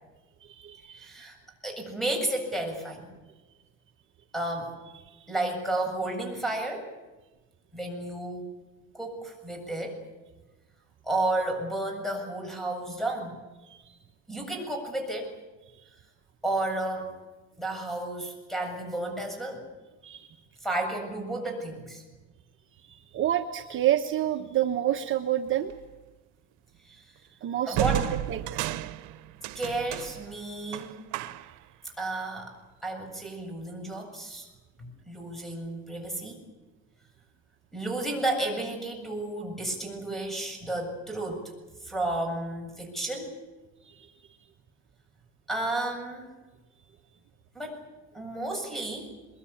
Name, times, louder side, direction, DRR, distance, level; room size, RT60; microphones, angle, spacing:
voice 1, 0.4-1.2 5.0-5.3 13.6-14.0 15.7-15.9 20.0-20.3 22.8-25.7 27.4-28.6 43.8-44.1 46.8-46.9, right 12 dB, 45° right, 5 dB, 1.2 m, -29 dB
voice 2, 1.0-1.4 1.6-3.1 4.3-4.7 5.3-6.9 7.7-8.4 8.9-10.0 11.0-13.4 14.3-15.3 16.4-17.2 17.6-19.6 20.6-22.0 26.9-27.0 27.7-28.0 29.5-31.0 31.8-32.5 32.8-34.5 34.8-36.4 37.7-41.5 41.8-43.3 45.5-46.3 47.5-47.8 48.1-49.1, right 2 dB, ahead, 4 dB, 7.8 m, -32 dB
sound 1, 25.7-25.9 27.7-31.7, right 14 dB, 75° right, 1.1 m, -33 dB
22.5 x 22.5 x 8.7 m, 1.2 s
cardioid pair, 125°, 29 cm